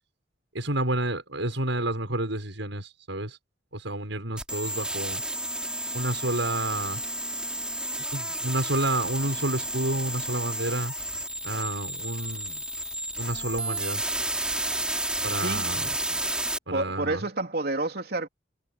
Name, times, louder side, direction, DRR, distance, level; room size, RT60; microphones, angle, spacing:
voice 1, 0.5-3.4 3.7-5.2 5.9-7.0 8.1-10.9 11.4-12.6 13.2-14.0 15.2-16.2 16.7-17.2, right 1 dB, 85° right, 6.9 m, -30 dB
sound 1, 4.4-16.6, right 1 dB, 5° right, 4.0 m, -31 dB
voice 2, 16.7-18.3, right 2 dB, 55° right, 3.4 m, -29 dB
head